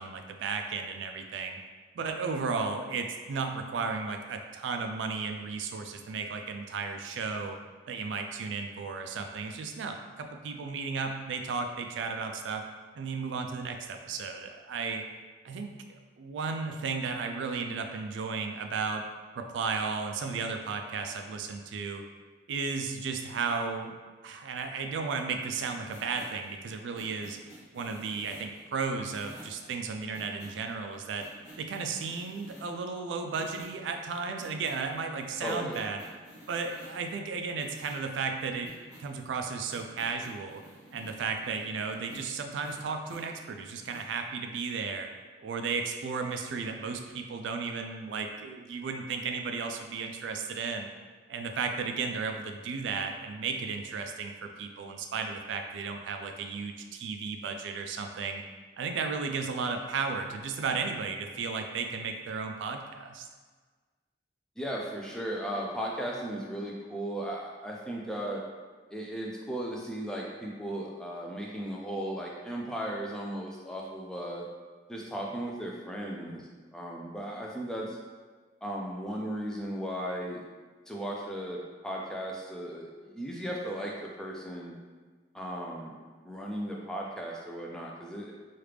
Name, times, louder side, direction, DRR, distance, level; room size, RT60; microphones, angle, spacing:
voice 1, 0.0-1.6 2.0-7.6 7.9-12.6 12.9-15.0 15.4-15.7 16.2-19.0 19.3-22.0 22.5-23.9 24.2-27.4 27.7-31.2 31.6-36.0 36.5-38.7 39.0-40.6 40.9-45.1 45.4-50.9 51.3-58.4 58.8-63.3, right 5 dB, 90° right, 4 dB, 0.3 m, -34 dB
sound 1, 25.4-32.7 33.3-44.1, equal, 70° left, 0.8 m, -53 dB
voice 2, 35.4-35.8 64.6-68.4 68.9-74.4 74.9-78.0 78.6-80.4 80.9-84.7 85.3-85.9 86.2-88.3, right 1 dB, 5° left, -3 dB, 0.3 m, -36 dB
3.2 x 2.4 x 3.2 m, 1.4 s
head